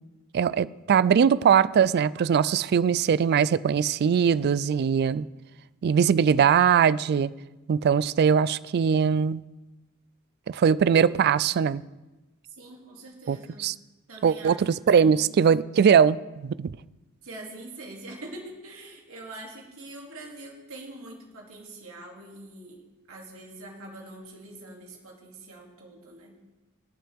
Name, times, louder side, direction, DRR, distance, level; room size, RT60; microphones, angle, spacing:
voice 1, 0.3-5.3 5.8-7.3 7.7-9.4 10.5-11.8 13.3-13.7 14.2-16.8, right 7 dB, 50° right, 0.3 m, -21 dB
voice 2, 12.5-13.7 14.1-15.5 17.2-26.4, right 2 dB, 75° right, 2.6 m, -44 dB
20.0 x 7.5 x 3.5 m
head